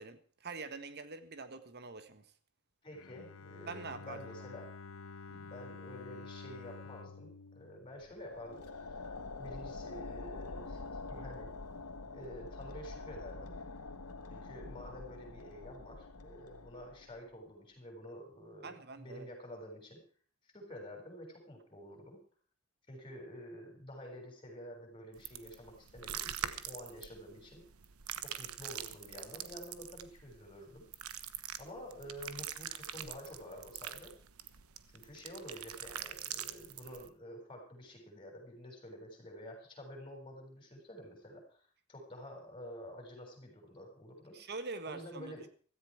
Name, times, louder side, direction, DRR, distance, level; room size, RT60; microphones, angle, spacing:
voice 1, 0.0-2.3 3.7-4.3 5.3-5.4 18.6-19.3 44.3-45.3, right 3 dB, 50° right, 1.6 m, -45 dB
voice 2, 2.8-4.7 5.4-8.7 9.4-10.8 11.1-11.6 12.1-13.5 14.3-20.0 20.4-22.2 22.9-27.6 28.2-30.9 31.6-34.1 34.9-44.4 44.9-45.5, equal, 25° left, 6.7 m, -49 dB
Bowed string instrument, 2.9-8.9, left 4 dB, 65° left, 0.9 m, -50 dB
sound 1, 8.0-17.3, left 3 dB, 90° left, 1.4 m, -46 dB
sound 2, 25.2-37.1, right 10 dB, 75° right, 1.2 m, -44 dB
16.0 x 14.5 x 4.8 m
head